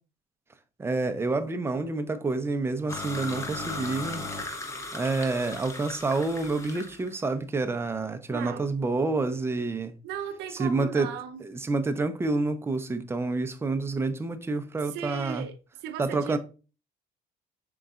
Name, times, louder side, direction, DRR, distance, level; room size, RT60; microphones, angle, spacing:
voice 1, 0.8-4.2 4.9-9.9 10.6-11.1 11.4-15.5 16.0-16.4, right 3 dB, 15° right, 0.5 m, -28 dB
sound 1, 2.9-7.1, left 2 dB, 15° left, 0.8 m, -37 dB
voice 2, 8.3-8.7 10.0-11.4 14.9-16.4, right 9 dB, 80° right, 0.6 m, -37 dB
5.2 x 3.8 x 2.4 m
cardioid pair, 110°, 17 cm